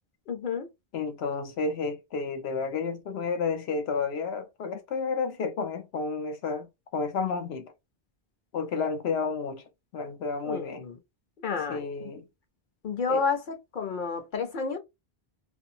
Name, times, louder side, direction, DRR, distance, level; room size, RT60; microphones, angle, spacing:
voice 1, 0.3-0.7 10.4-11.0 11.4-12.1 12.8-14.8, left 5 dB, 55° left, 0.8 m, -30 dB
voice 2, 0.9-7.7 8.5-9.6 9.9-10.8 11.7-12.2 13.1-13.2, left 4 dB, 85° left, 0.9 m, -31 dB
2.6 x 2.4 x 2.7 m
omnidirectional pair, 1.0 m